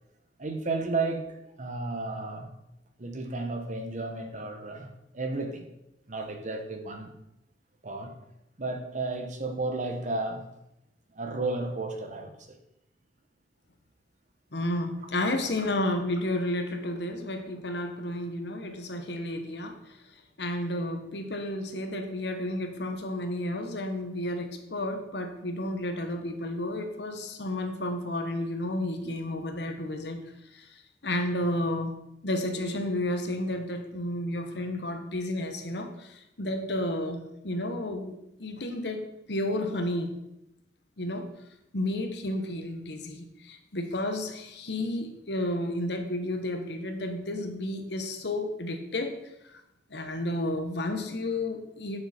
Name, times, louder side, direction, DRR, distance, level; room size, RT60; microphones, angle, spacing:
voice 1, 0.4-2.5 3.0-5.6 6.1-7.1 7.8-8.2 8.6-10.4 11.1-12.6, right 3 dB, 45° right, 5 dB, 1.2 m, -33 dB
voice 2, 14.5-20.0 20.4-30.2 30.5-31.9 32.2-38.1 38.4-40.2 41.0-41.3 41.7-49.2 49.5-49.6 49.9-52.0, left 1 dB, 75° left, 6 dB, 1.1 m, -32 dB
8.8 x 6.6 x 4.3 m, 0.84 s
head